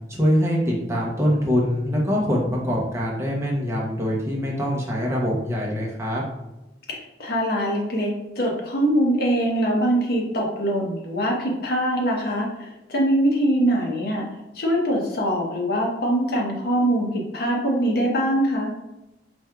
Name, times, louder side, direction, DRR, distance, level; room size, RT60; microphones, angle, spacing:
voice 1, 0.1-6.2, equal, 15° right, -4 dB, 0.7 m, -23 dB
voice 2, 6.9-14.3 14.5-18.7, right 1 dB, 60° left, -1 dB, 0.9 m, -23 dB
4.4 x 3.4 x 2.3 m, 0.97 s
head